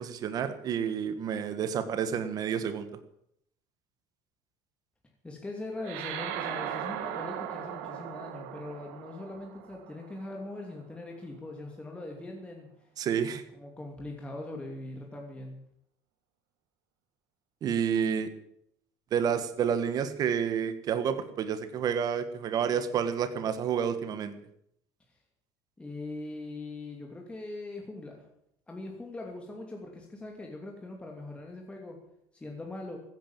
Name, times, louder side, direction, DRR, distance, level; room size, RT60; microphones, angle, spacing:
voice 1, 0.0-2.9 13.0-13.4 17.6-18.3 19.1-24.3, right 7 dB, 50° right, 11 dB, 1.6 m, -29 dB
voice 2, 5.2-12.7 13.5-15.5 25.8-28.2 28.7-32.0 32.3-33.0, left 2 dB, 15° left, 1 dB, 2.8 m, -41 dB
sound 1, 5.8-10.6, right 10 dB, 85° right, 2.1 m, -38 dB
15.5 x 9.4 x 8.8 m, 0.74 s
supercardioid pair, 105°, 8 cm